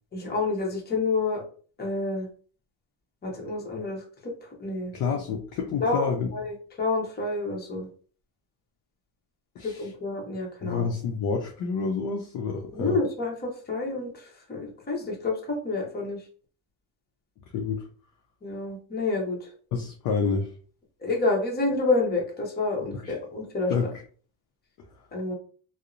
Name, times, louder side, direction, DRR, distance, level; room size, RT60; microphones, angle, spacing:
voice 1, 0.1-1.4 1.8-2.3 3.2-4.3 4.6-4.9 5.8-7.9 9.6-10.9 12.7-13.3 13.7-16.2 18.4-19.4 21.0-23.7 25.1-25.3, left 3 dB, 20° left, -1 dB, 0.8 m, -28 dB
voice 2, 4.9-6.3 9.6-9.9 10.6-13.0 17.5-17.8 19.7-20.5 22.9-23.1 23.7-24.0, left 5 dB, 45° left, 1 dB, 0.5 m, -28 dB
2.7 x 2.0 x 2.4 m, 0.43 s
cardioid pair, 115°, 46 cm